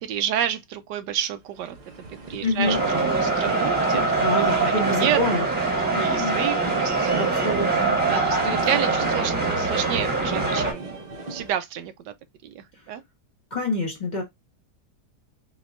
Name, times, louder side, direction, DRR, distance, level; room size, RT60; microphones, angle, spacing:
voice 1, 0.0-1.7 2.3-4.6 5.0-5.5 5.8-7.2 8.1-12.1 12.4-13.0, right 10 dB, 85° right, 1.2 m, -30 dB
sound 1, 1.5-11.5, right 2 dB, 40° right, 0.6 m, -38 dB
voice 2, 2.4-2.8 4.2-5.4 5.9-6.4 7.2-7.9 8.4-8.9 13.5-14.2, left 2 dB, 30° left, 1.1 m, -27 dB
sound 2, 2.6-10.7, right 3 dB, 5° right, 1.1 m, -23 dB
4.2 x 2.9 x 2.4 m
omnidirectional pair, 1.8 m